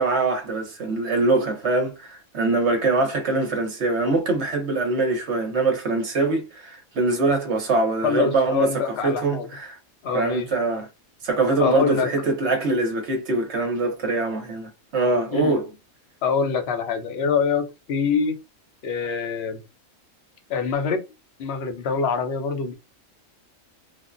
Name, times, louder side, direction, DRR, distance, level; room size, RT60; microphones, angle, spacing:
voice 1, 0.0-8.7 9.0-9.8 10.1-10.9 11.2-15.7, right 3 dB, 60° right, 1.0 m, -23 dB
voice 2, 8.0-9.5 10.0-10.5 11.6-12.3 15.3-15.5 16.2-18.4 18.8-19.6 20.5-21.0 21.4-22.7, left 6 dB, 55° left, 0.9 m, -24 dB
3.5 x 2.0 x 2.5 m
omnidirectional pair, 1.4 m